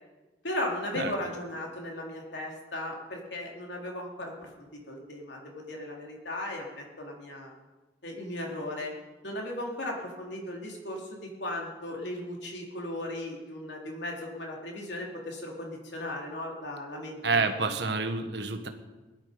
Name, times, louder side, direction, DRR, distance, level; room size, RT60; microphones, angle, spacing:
voice 1, 0.4-7.5 8.0-8.9 9.2-17.5 17.8-17.9, left 1 dB, 75° left, -1 dB, 3.3 m, -37 dB
voice 2, 17.2-18.7, right 4 dB, 70° right, 7 dB, 1.4 m, -28 dB
18.5 x 11.5 x 5.1 m, 1.2 s
head